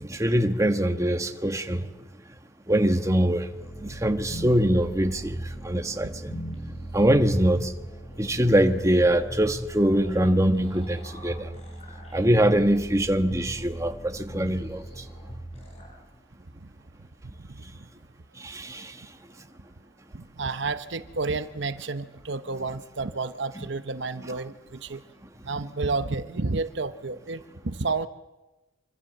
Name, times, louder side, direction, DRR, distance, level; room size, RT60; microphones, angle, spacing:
voice 1, 0.0-1.9 2.7-3.5 3.8-5.4 5.6-6.4 6.9-7.7 8.2-11.5 12.1-14.8 18.4-19.0, right 1 dB, 15° right, 7 dB, 1.5 m, -23 dB
sound 1, 3.5-16.0, right 1 dB, 30° left, 7.0 m, -38 dB
voice 2, 20.1-25.0 25.4-28.1, right 3 dB, 65° right, 11 dB, 0.9 m, -30 dB
26.0 x 25.0 x 7.9 m, 1.1 s
head